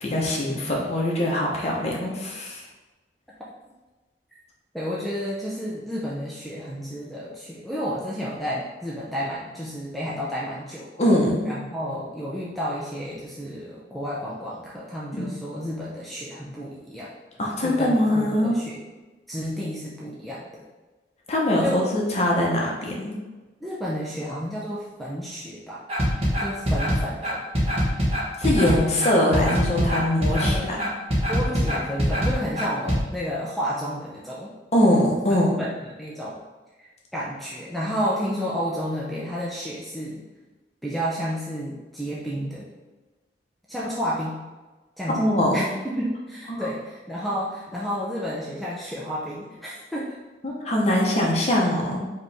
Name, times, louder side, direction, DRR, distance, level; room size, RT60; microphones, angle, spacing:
voice 1, 0.0-2.6 11.0-11.5 15.1-15.3 17.4-18.6 21.3-23.2 28.4-30.9 34.7-35.6 45.1-45.7 46.5-46.7 50.4-52.1, left 1 dB, 40° left, -3 dB, 0.8 m, -22 dB
voice 2, 4.7-10.9 11.4-17.1 17.6-18.8 19.3-20.6 21.6-21.9 23.6-25.8 26.4-27.4 28.7-29.2 30.4-30.7 31.3-34.6 35.3-36.4 36.8-40.2 40.8-42.7 43.7-44.4 45.0-50.2, equal, ahead, -7 dB, 0.5 m, -31 dB
sound 1, 25.9-33.0, equal, 35° right, 1.3 m, -23 dB
4.8 x 3.0 x 3.4 m, 1.2 s
head